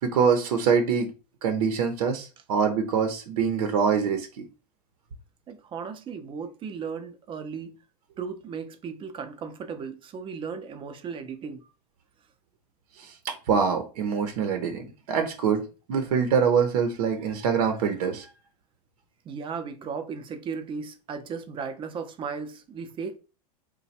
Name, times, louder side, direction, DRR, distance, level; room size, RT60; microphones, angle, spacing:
voice 1, 0.0-1.1 1.4-4.5 13.0-15.6 15.9-18.3, right 6 dB, 70° right, 0.7 m, -24 dB
voice 2, 5.5-7.8 8.2-11.6 19.2-23.2, right 5 dB, 25° right, 0.6 m, -36 dB
3.2 x 2.2 x 4.1 m
hypercardioid pair, 125°, 21 cm